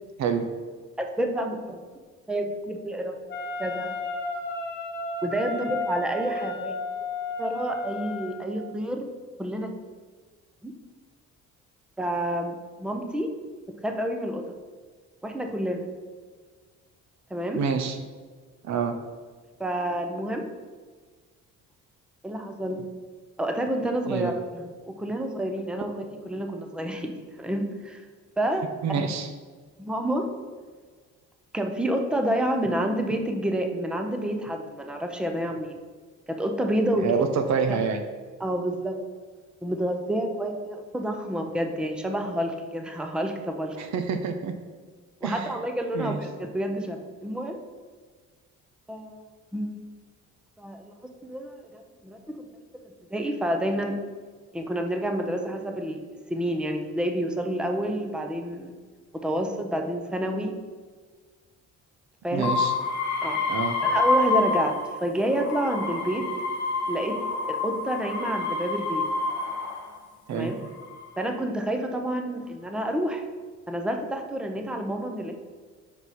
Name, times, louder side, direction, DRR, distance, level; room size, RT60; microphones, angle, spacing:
voice 1, 1.0-1.8 2.3-3.2 3.6-3.9 5.2-6.8 7.4-9.1 9.4-9.7 10.6-10.7 12.0-13.3 13.8-14.5 15.2-15.9 17.3-17.6 19.6-20.5 22.2-22.8 23.4-25.9 26.2-28.0 28.4-28.7 28.9-29.1 29.8-30.3 31.5-35.8 36.3-37.1 37.7-37.8 38.4-39.0 39.6-43.8 45.2-47.6 48.9-49.2 49.5-49.9 50.6-50.9 51.2-52.5 53.1-54.0 54.5-56.0 56.3-58.7 59.1-60.6 62.2-62.5 63.2-63.4 63.8-66.3 66.9-67.2 67.5-69.0 70.3-70.6 71.2-73.2 73.7-75.3, right 1 dB, 5° right, 4 dB, 0.6 m, -29 dB
Wind instrument woodwind instrument, 3.3-8.5, left 2 dB, 35° left, 1.0 m, -33 dB
voice 2, 17.5-18.0 18.6-19.0 24.0-24.3 28.8-29.3 37.0-38.0 43.8-44.6 45.2-45.5 45.9-46.2 62.3-62.7 63.5-63.8 70.3-70.5, right 6 dB, 65° right, 8 dB, 0.6 m, -27 dB
sound 1, 62.4-65.0 65.3-69.9 70.6-71.2, left 3 dB, 75° left, 1.4 m, -27 dB
5.3 x 4.7 x 4.2 m, 1.5 s
cardioid pair, 90°, 30 cm